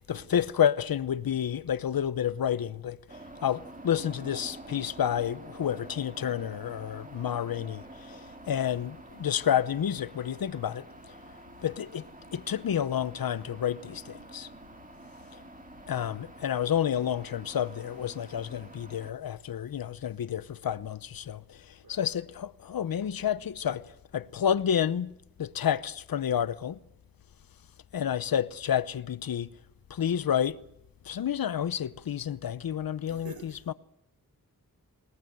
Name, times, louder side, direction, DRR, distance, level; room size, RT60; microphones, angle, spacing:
voice 1, 0.1-3.0 3.4-10.8 11.6-12.1 12.3-14.5 15.9-21.6 21.9-23.8 24.1-25.1 25.4-26.8 27.9-29.5 29.9-30.6 31.1-33.3, left 9 dB, 85° left, 0.9 m, -29 dB
sound 1, 3.1-19.1, right 2 dB, 25° right, 2.2 m, -48 dB
voice 2, 33.0-33.7, right 4 dB, 90° right, 5.0 m, -49 dB
21.0 x 21.0 x 7.8 m
wide cardioid pair, 95°, 34 cm